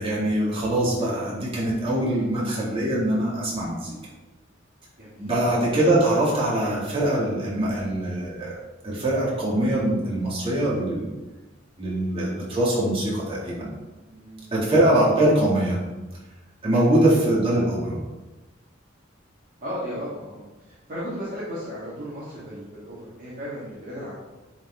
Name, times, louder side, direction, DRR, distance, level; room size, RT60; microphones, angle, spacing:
voice 1, 0.0-3.9 5.2-8.6 8.8-11.1 11.8-13.7 14.5-15.8 16.6-18.0, right 1 dB, 30° right, -7 dB, 2.4 m, -23 dB
voice 2, 5.0-5.5 14.0-14.7 16.7-17.1 19.6-24.2, equal, 45° right, -8 dB, 1.8 m, -36 dB
10.0 x 4.2 x 3.7 m, 1.1 s
head